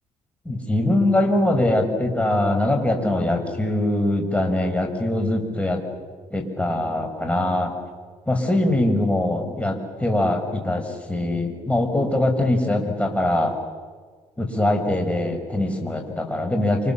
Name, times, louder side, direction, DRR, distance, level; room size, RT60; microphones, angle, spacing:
voice 1, 0.4-5.8 6.3-7.7 8.3-13.6 14.4-16.9, left 1 dB, 10° left, 3 dB, 5.9 m, -22 dB
28.0 x 27.5 x 7.3 m, 1.5 s
cardioid pair, 100°, 14 cm